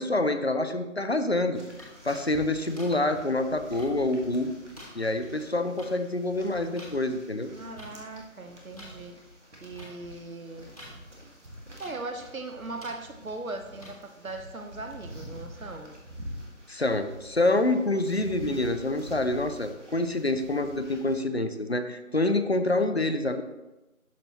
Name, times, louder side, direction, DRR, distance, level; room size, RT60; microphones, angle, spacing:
voice 1, 0.0-4.5 4.9-7.5 16.7-23.4, left 2 dB, 50° left, 9 dB, 0.6 m, -27 dB
sound 1, 1.5-21.2, equal, 55° right, 1.7 m, -46 dB
sound 2, 1.8-1.9 2.8-2.9 3.8-3.9 4.8-4.9 5.8-5.9 6.8-6.9 7.8-7.9 8.8-8.9 9.8-9.9 10.8-10.9 11.8-11.9 12.8-12.9 13.8-13.9, left 1 dB, 25° left, 1.3 m, -46 dB
voice 2, 7.5-9.2 9.6-10.7 11.8-15.9, right 2 dB, 80° right, 6 dB, 1.1 m, -39 dB
12.0 x 4.2 x 2.9 m, 1.0 s
figure-of-eight pair, 170°, 41 cm